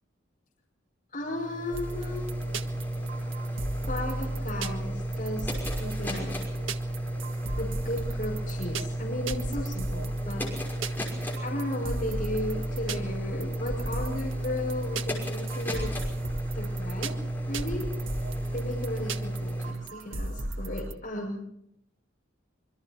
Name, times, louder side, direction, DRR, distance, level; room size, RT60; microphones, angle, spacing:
voice 1, 1.1-2.3 3.9-6.3 7.6-10.6 11.4-15.9 16.5-17.2 17.5-18.3 18.5-21.4, left 1 dB, 45° left, -1 dB, 6.2 m, -35 dB
sound 1, 1.2-19.7, right 1 dB, 10° left, 5.8 m, -33 dB
sound 2, 1.7-20.9, right 2 dB, 85° right, 1.6 m, -37 dB
26.5 x 24.0 x 4.5 m, 0.76 s
head